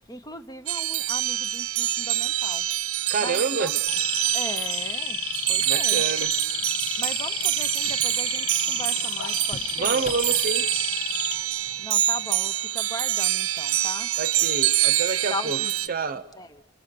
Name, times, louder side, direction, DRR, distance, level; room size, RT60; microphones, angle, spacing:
voice 1, 0.0-2.7 3.2-3.8 4.3-6.0 7.0-10.1 11.8-14.1 15.3-16.6, left 1 dB, 20° left, 0.8 m, -38 dB
sound 1, 0.7-15.9, right 13 dB, 80° right, 0.8 m, -26 dB
voice 2, 3.1-3.7 5.7-6.3 9.8-10.7 14.2-15.6 15.9-16.3, right 4 dB, 45° right, 0.8 m, -28 dB
sound 2, 3.9-11.7 12.0-12.4, left 8 dB, 90° left, 1.2 m, -32 dB
sound 3, 5.5-11.0, left 3 dB, 40° left, 1.3 m, -47 dB
28.0 x 26.5 x 6.8 m
head